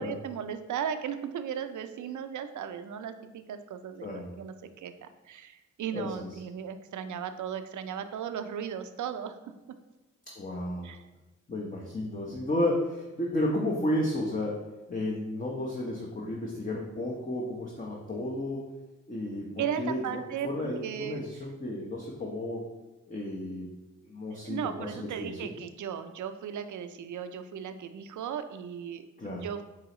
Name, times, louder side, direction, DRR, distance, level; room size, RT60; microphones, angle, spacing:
voice 1, 0.0-9.4 10.8-11.0 19.6-21.2 24.3-29.6, right 8 dB, 60° right, 9 dB, 0.5 m, -36 dB
voice 2, 4.0-4.3 5.9-6.1 10.4-10.9 11.5-14.6 14.9-18.7 19.1-19.5 19.8-22.6 23.1-23.7 24.1-25.5 29.2-29.5, left 1 dB, 25° left, -3 dB, 0.8 m, -32 dB
4.6 x 2.9 x 3.0 m, 1.1 s
supercardioid pair, 40°, 33 cm